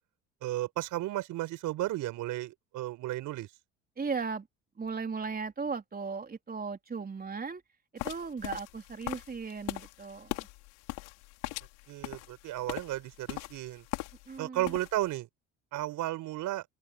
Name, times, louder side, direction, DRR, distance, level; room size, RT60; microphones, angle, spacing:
voice 1, 0.4-3.5 11.9-13.8 14.4-15.3 15.7-16.6, right 15 dB, 65° right, 5.2 m, -34 dB
voice 2, 4.0-4.5 4.8-7.6 8.0-10.5 14.3-14.8, right 5 dB, 25° right, 4.1 m, -37 dB
sound 1, 8.0-14.4 14.6-15.1, left 26 dB, 80° left, 4.0 m, -40 dB
open air
hypercardioid pair, 70°, 33 cm